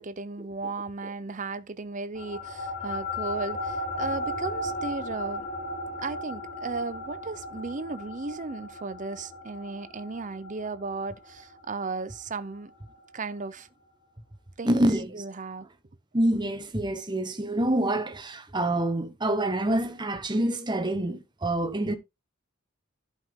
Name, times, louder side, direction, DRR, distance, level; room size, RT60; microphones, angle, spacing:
voice 1, 0.0-5.5 6.0-12.7 13.1-13.7 14.6-14.9 15.1-15.7, right 3 dB, 35° right, 0.6 m, -35 dB
sound 1, 2.1-12.9, left 1 dB, 40° left, 2.9 m, -36 dB
voice 2, 14.6-15.2 16.1-22.0, right 1 dB, 20° right, 1.2 m, -26 dB
11.0 x 5.6 x 3.7 m
head